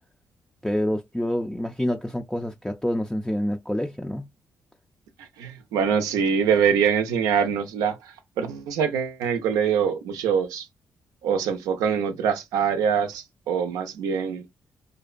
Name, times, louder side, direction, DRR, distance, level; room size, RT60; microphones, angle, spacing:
voice 1, 0.6-4.3, equal, 5° left, 0.3 m, -27 dB
voice 2, 5.2-10.7 11.2-14.5, right 7 dB, 90° right, 0.4 m, -24 dB
2.5 x 2.1 x 2.4 m
supercardioid pair, 55°, 6 cm